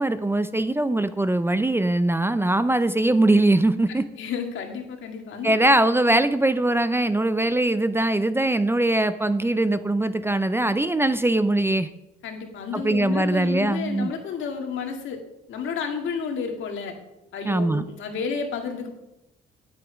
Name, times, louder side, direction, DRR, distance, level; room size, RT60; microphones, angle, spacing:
voice 1, 0.0-4.0 5.4-11.9 12.7-14.1 17.5-17.8, right 1 dB, 10° right, 12 dB, 0.5 m, -21 dB
voice 2, 4.2-5.5 12.2-15.2 15.5-17.0 17.3-18.9, left 5 dB, 75° left, 3 dB, 2.1 m, -31 dB
10.5 x 7.9 x 5.1 m, 0.92 s
cardioid pair, 90°, 20 cm